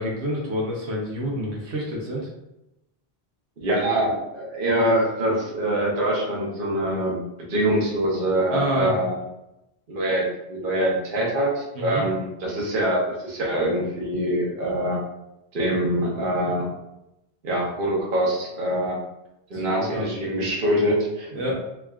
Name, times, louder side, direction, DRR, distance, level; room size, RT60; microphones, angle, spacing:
voice 1, 0.0-2.3 8.5-8.9 11.8-12.1 19.5-20.1 21.3-21.5, equal, 75° right, -3 dB, 1.1 m, -28 dB
voice 2, 3.6-7.2 7.5-9.2 9.9-15.0 15.5-16.7 17.4-19.0 19.5-21.5, right 1 dB, 55° right, -3 dB, 1.1 m, -24 dB
3.7 x 3.4 x 2.4 m, 0.88 s
omnidirectional pair, 1.1 m